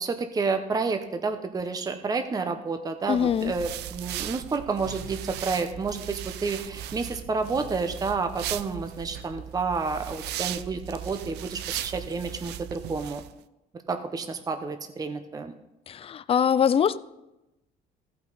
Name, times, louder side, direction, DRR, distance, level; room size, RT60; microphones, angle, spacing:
voice 1, 0.0-13.2 13.9-15.5, right 4 dB, 20° right, 0.7 m, -30 dB
voice 2, 3.1-3.5 15.9-17.0, left 8 dB, 35° left, 0.4 m, -23 dB
sound 1, 3.1-13.3, right 11 dB, 80° right, 0.5 m, -37 dB
15.0 x 5.7 x 3.9 m
cardioid pair, 110°, 17 cm